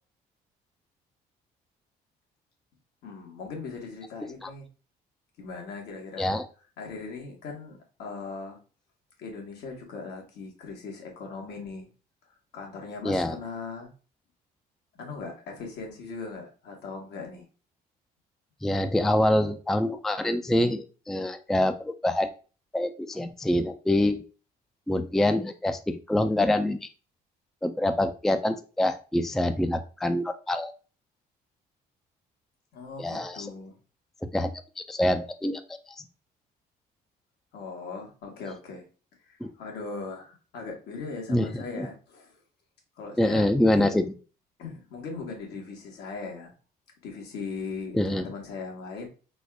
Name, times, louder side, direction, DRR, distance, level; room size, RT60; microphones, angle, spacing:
voice 1, 3.0-4.7 5.4-6.4 6.8-8.6 9.2-11.9 12.5-13.9 15.0-17.5 32.7-33.8 37.5-38.8 39.3-42.4 42.9-44.0 44.6-46.5 47.0-49.1, left 4 dB, 75° left, 0 dB, 1.7 m, -39 dB
voice 2, 13.0-13.4 18.6-22.3 22.7-24.2 24.9-26.9 27.6-30.7 33.0-33.5 34.3-35.6 36.0-36.1 39.4-39.5 41.3-41.9 43.2-44.1 47.9-48.3, left 1 dB, ahead, 8 dB, 0.4 m, -25 dB
4.0 x 2.5 x 4.6 m, 0.36 s
cardioid pair, 110°, 17 cm